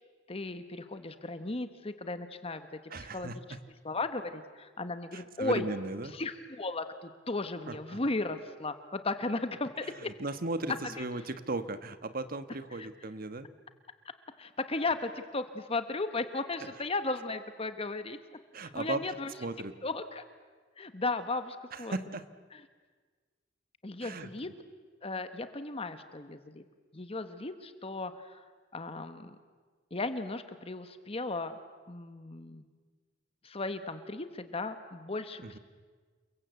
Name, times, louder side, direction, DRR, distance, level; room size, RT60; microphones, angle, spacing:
voice 1, 0.3-3.3 3.8-5.6 6.1-10.1 11.0-11.1 12.8-12.9 14.4-18.2 18.7-19.3 19.8-20.2 20.8-22.0 22.5-22.6 23.8-24.5 25.0-26.6 26.9-28.4 28.7-29.4 29.9-31.6 31.9-32.6 33.4-35.6, left 3 dB, 30° left, 10 dB, 1.2 m, -35 dB
voice 2, 2.9-3.6 5.1-6.1 7.7-8.0 10.0-13.5 18.5-19.0 19.4-19.7 21.7-22.2 24.0-24.5 35.4-35.6, right 2 dB, 50° right, 11 dB, 1.3 m, -37 dB
29.0 x 22.5 x 8.2 m, 1.5 s
head